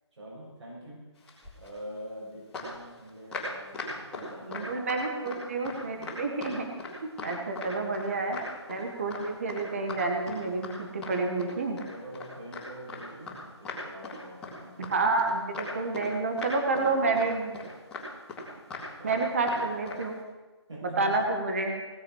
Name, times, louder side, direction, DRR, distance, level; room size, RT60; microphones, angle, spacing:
voice 1, 0.1-1.1 1.6-5.0 5.9-6.1 11.9-15.0 16.7-17.1 19.0-19.3 20.7-21.3 21.8-21.9, right 1 dB, 75° right, -6 dB, 6.5 m, -45 dB
sound 1, 1.2-1.8 2.5-5.4 5.6-6.9 7.2-8.1 8.3-8.8 9.1-9.2 9.5-9.6 9.9-10.0 10.3-11.1 11.4-13.4 13.6-14.2 14.4-14.5 14.8-15.3 15.5-16.1 16.4-16.9 17.2-17.3 17.5-19.2 19.5-19.6 19.9-20.0, left 3 dB, 5° left, 2.5 m, -39 dB
voice 2, 4.5-6.6 7.0-8.4 8.7-11.8 14.8-17.6 19.0-20.1 20.8-21.7, right 3 dB, 30° right, 3 dB, 1.5 m, -29 dB
18.5 x 8.5 x 6.3 m, 1.2 s
hypercardioid pair, 175°, 15 cm